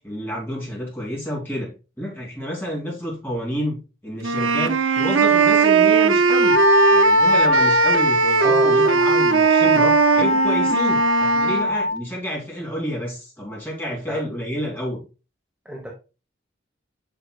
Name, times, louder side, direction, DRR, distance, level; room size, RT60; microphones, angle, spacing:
voice 1, 0.0-6.6 6.9-15.0, equal, 10° left, 2.9 m, -29 dB
sound 1, 4.2-11.7, right 5 dB, 90° right, 0.6 m, -19 dB
Wind instrument woodwind instrument, 6.4-12.0, left 2 dB, 55° left, 1.9 m, -20 dB
voice 2, 8.4-8.8 13.8-14.3 15.6-15.9, equal, 5° right, 1.2 m, -31 dB
7.9 x 6.3 x 2.4 m
head